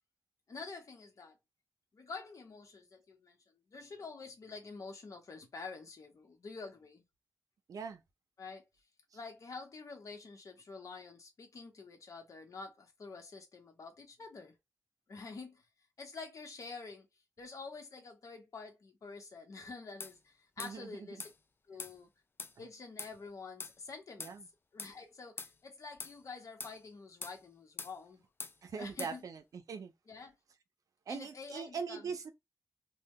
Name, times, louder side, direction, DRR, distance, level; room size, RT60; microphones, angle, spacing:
voice 1, 0.5-1.4 1.9-3.4 3.7-7.0 8.4-8.6 9.1-14.5 15.1-15.6 16.0-17.1 17.4-21.2 21.7-22.1 22.6-24.3 24.7-28.2 28.8-29.2 30.1-30.3 31.1-32.1, left 4 dB, 65° left, 0.8 m, -48 dB
voice 2, 7.7-8.0 20.6-21.2 22.6-22.7 24.2-24.5 28.6-29.9 31.1-32.3, right 5 dB, 85° right, 0.5 m, -42 dB
sound 1, 20.0-20.1 20.6-20.7 21.2-21.3 21.8-21.9 22.4-22.5 23.0-23.1 23.6-23.7 24.2-24.3 24.8-24.9 25.4-25.5 26.0-26.2 26.6-26.8 27.2-27.4 27.8-27.9 28.4-28.5 29.0-29.1, left 4 dB, 40° left, 0.3 m, -43 dB
2.1 x 2.0 x 3.4 m
wide cardioid pair, 80°, 6 cm